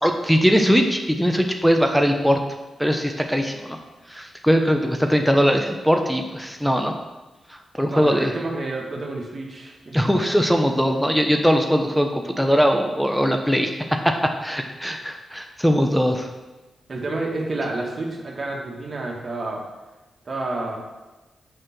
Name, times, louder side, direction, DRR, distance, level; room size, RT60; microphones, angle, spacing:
voice 1, 0.0-2.4 2.8-3.8 4.1-7.0 7.5-8.3 9.9-14.1 14.4-16.3, equal, ahead, 4 dB, 1.0 m, -20 dB
voice 2, 7.9-10.3 16.9-19.7 20.3-20.8, right 2 dB, 50° right, -1 dB, 2.0 m, -29 dB
6.5 x 5.9 x 6.1 m, 1.1 s
supercardioid pair, 45°, 0 cm